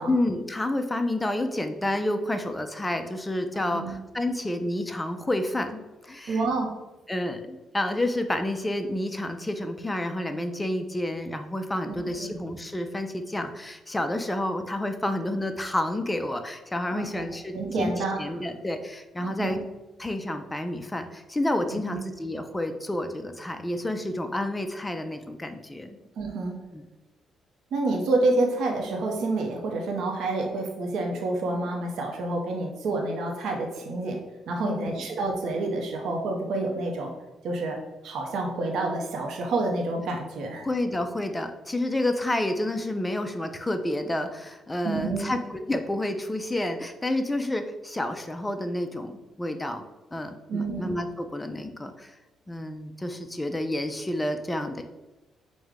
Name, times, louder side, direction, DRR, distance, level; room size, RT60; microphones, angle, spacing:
voice 1, 0.1-6.4 7.1-19.6 20.0-26.0 26.7-26.8 34.6-35.1 40.6-49.8 50.1-52.1 52.5-54.8, left 1 dB, 15° left, 7 dB, 0.4 m, -29 dB
voice 2, 3.5-3.9 6.3-6.7 11.9-12.3 16.9-17.2 17.5-18.2 19.2-19.6 21.9-22.0 26.2-26.6 27.7-34.2 34.5-37.1 37.4-37.8 38.0-40.7 44.8-45.3 50.5-50.9, right 2 dB, 75° right, 1 dB, 0.6 m, -28 dB
4.8 x 2.1 x 3.6 m, 1.1 s
cardioid pair, 90°, 0 cm